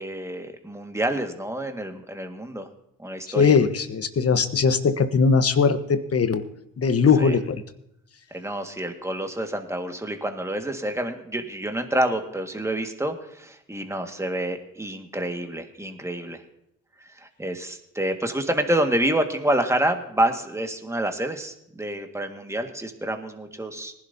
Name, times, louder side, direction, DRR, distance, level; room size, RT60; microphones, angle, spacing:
voice 1, 0.0-2.7 3.0-3.5 7.2-7.4 8.3-16.4 17.2-23.9, right 1 dB, 10° right, 5 dB, 1.8 m, -28 dB
voice 2, 3.3-6.4 6.8-7.6, left 5 dB, 45° left, 10 dB, 1.2 m, -20 dB
19.5 x 11.0 x 2.8 m, 0.78 s
supercardioid pair, 65°, 34 cm